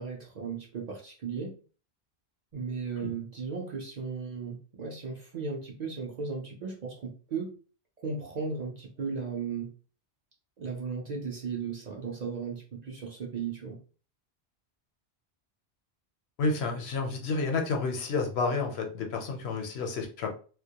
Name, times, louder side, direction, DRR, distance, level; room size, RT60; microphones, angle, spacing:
voice 1, 0.0-1.5 2.5-7.6 8.0-9.7 10.6-13.8, right 5 dB, 55° right, -1 dB, 0.5 m, -36 dB
voice 2, 16.4-20.3, left 4 dB, 75° left, 3 dB, 0.9 m, -30 dB
2.2 x 2.1 x 2.8 m, 0.39 s
omnidirectional pair, 1.1 m